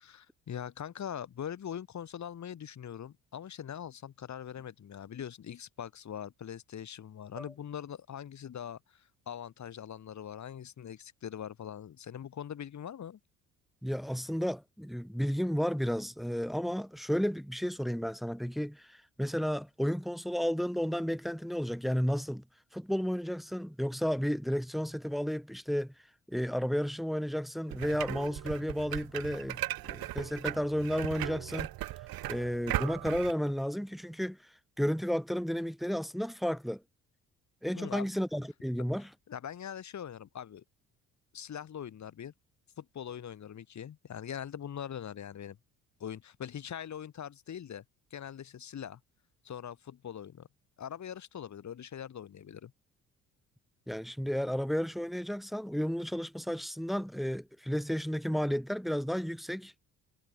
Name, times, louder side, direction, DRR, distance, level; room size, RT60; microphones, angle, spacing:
voice 1, 0.0-13.2 37.7-38.1 39.3-40.6 41.3-42.3 42.8-45.6 46.0-47.8 48.1-49.0 49.4-50.5 50.8-52.7, left 9 dB, 45° left, 1.8 m, -42 dB
voice 2, 13.8-22.4 22.7-25.9 26.3-31.7 32.3-34.4 34.8-36.8 37.6-39.1 53.9-59.7, equal, ahead, 0.6 m, -32 dB
sound 1, 27.7-33.3, right 16 dB, 60° right, 1.4 m, -37 dB
hypercardioid pair, 55°, 39 cm